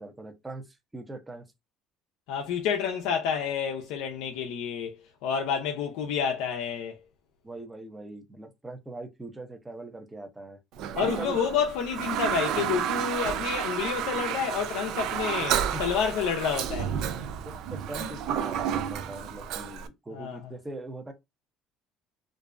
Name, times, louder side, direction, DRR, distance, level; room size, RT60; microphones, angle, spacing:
voice 1, 0.0-1.5 7.4-10.6 11.2-11.4 15.7-15.8 17.4-21.1, right 2 dB, 15° right, 0.7 m, -41 dB
voice 2, 2.3-7.0 11.0-16.9 20.1-20.4, left 7 dB, 80° left, 0.5 m, -29 dB
Toilet flush, 10.7-19.9, right 9 dB, 70° right, 0.4 m, -31 dB
2.5 x 2.1 x 2.4 m
supercardioid pair, 100°, 0 cm